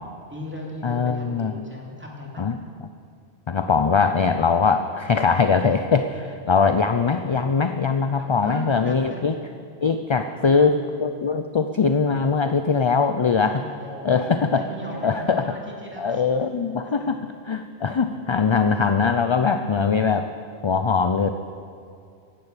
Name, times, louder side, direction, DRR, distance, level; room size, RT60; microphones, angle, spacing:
voice 1, 0.3-2.5 8.1-9.2 10.3-10.7 13.6-16.2 17.0-17.1, equal, 10° right, -2 dB, 2.7 m, -37 dB
voice 2, 0.8-1.6 2.4-2.6 3.5-9.4 9.8-13.6 14.0-14.6 15.0-15.5 16.0-17.2 17.5-20.3 20.6-21.3, left 5 dB, 40° left, 8 dB, 0.4 m, -21 dB
15.5 x 11.5 x 6.7 m, 2.4 s
omnidirectional pair, 1.1 m